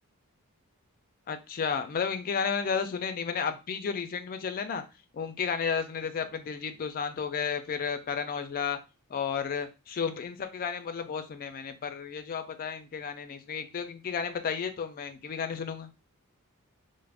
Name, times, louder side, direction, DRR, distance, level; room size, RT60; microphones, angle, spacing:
voice 1, 1.3-4.8 5.1-8.8 9.1-15.9, left 6 dB, 40° left, 8 dB, 0.3 m, -32 dB
2.4 x 2.0 x 3.3 m, 0.29 s
head